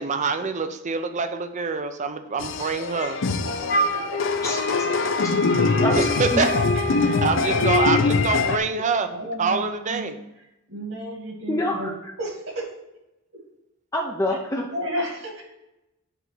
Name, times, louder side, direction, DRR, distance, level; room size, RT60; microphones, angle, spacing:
voice 1, 0.0-3.2 6.2-6.5 7.2-9.1 9.4-10.1, right 4 dB, 35° right, 8 dB, 0.6 m, -25 dB
sound 1, 2.4-8.6, left 4 dB, 65° left, 0.5 m, -23 dB
voice 2, 3.4-4.2 5.1-5.2 6.3-6.8 7.2-7.9 9.1-10.1 10.7-11.9 12.2-12.7 14.7-15.4, right 1 dB, 70° right, 0 dB, 2.2 m, -33 dB
Wind instrument woodwind instrument, 3.7-7.3, equal, 45° left, 0.9 m, -27 dB
voice 3, 5.8-6.5 11.5-12.1 13.9-14.7, left 1 dB, 15° left, 0 dB, 0.6 m, -27 dB
6.9 x 3.6 x 6.0 m, 0.93 s
head